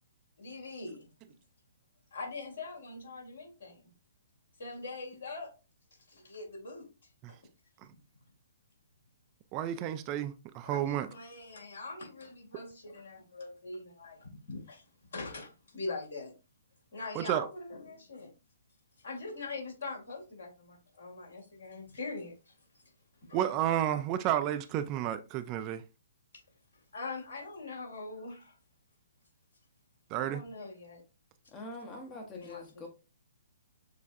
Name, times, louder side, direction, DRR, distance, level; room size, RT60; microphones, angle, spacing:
voice 1, 0.4-1.3 2.1-3.9 4.6-5.5 6.1-6.9 7.3-7.4 7.9-8.0 10.6-14.8 15.1-16.3 16.9-18.3 19.0-22.3 23.3-23.4 26.9-28.6 30.2-31.0 32.3-32.9, left 3 dB, 70° left, 2.1 m, -42 dB
voice 2, 9.5-11.1 17.2-17.5 23.3-25.8 30.1-30.4, right 11 dB, 30° right, 0.4 m, -31 dB
voice 3, 31.5-32.9, left 2 dB, 25° left, 0.8 m, -44 dB
6.5 x 2.3 x 2.5 m
figure-of-eight pair, 125°, 0 cm